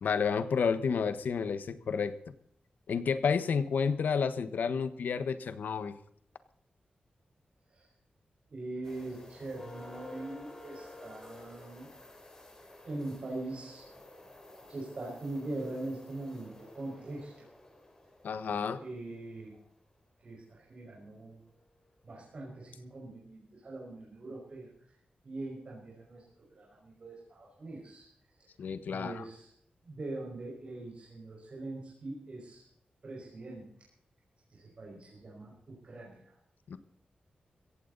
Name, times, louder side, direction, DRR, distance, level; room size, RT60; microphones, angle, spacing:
voice 1, 0.0-2.1 2.9-5.9 18.2-18.8 28.6-29.2 36.7-36.8, left 6 dB, 85° left, 12 dB, 1.3 m, -30 dB
voice 2, 8.5-11.9 12.8-13.8 14.7-17.3 18.8-19.6 20.2-21.4 22.0-24.7 25.2-26.2 26.5-28.1 28.9-29.5 29.9-32.6 33.0-33.7 34.5-36.3, right 2 dB, 40° right, -3 dB, 5.4 m, -42 dB
sound 1, 8.8-19.5 21.5-21.6 22.1-22.3, left 2 dB, 20° left, 3.6 m, -52 dB
17.0 x 15.5 x 4.0 m, 0.66 s
wide cardioid pair, 175°, 3 cm